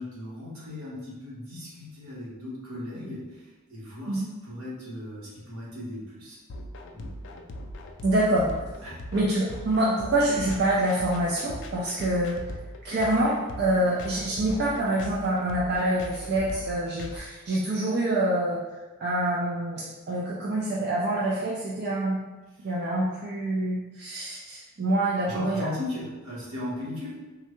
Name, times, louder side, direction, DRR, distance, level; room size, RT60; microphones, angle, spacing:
voice 1, 0.0-6.4 6.9-7.1 8.8-9.0 22.6-22.7 25.2-27.2, left 1 dB, 75° right, -6 dB, 1.1 m, -37 dB
sound 1, 6.5-17.2, left 1 dB, 60° left, 0.4 m, -39 dB
voice 2, 8.0-8.5 9.1-12.4 12.8-18.6 19.0-22.2 22.6-25.7, right 1 dB, 50° right, -5 dB, 0.4 m, -26 dB
3.6 x 2.2 x 3.0 m, 1.2 s
head